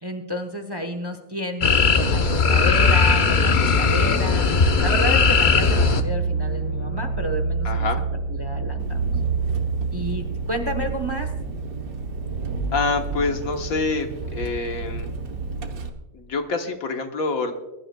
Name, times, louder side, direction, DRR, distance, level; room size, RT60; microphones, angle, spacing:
voice 1, 0.0-4.5 4.8-7.9 8.3-9.1 9.9-11.3, equal, 20° right, 5 dB, 0.8 m, -30 dB
sound 1, 1.6-6.0, left 4 dB, 45° left, 0.8 m, -18 dB
sound 2, 5.3-12.5, right 4 dB, 65° left, 4.8 m, -27 dB
voice 2, 7.6-8.1 12.7-15.1 16.1-17.5, left 3 dB, 80° left, 5 dB, 1.6 m, -26 dB
Engine, 8.8-15.9, right 3 dB, 85° right, 1.5 m, -32 dB
23.0 x 12.0 x 2.2 m, 1.1 s
omnidirectional pair, 1.5 m